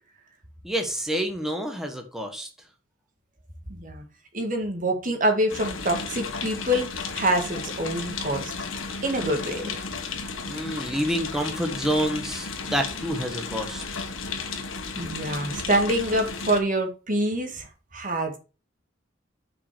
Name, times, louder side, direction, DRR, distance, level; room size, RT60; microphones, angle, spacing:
voice 1, 0.6-2.5 10.4-13.8, equal, ahead, 3 dB, 1.4 m, -28 dB
voice 2, 3.7-4.0 4.3-6.9 7.1-8.5 9.0-9.7 15.0-17.7 17.9-18.4, right 1 dB, 45° right, 5 dB, 1.8 m, -26 dB
sound 1, 5.5-16.6, left 4 dB, 85° left, 1.7 m, -34 dB
6.7 x 5.3 x 6.8 m, 0.33 s
head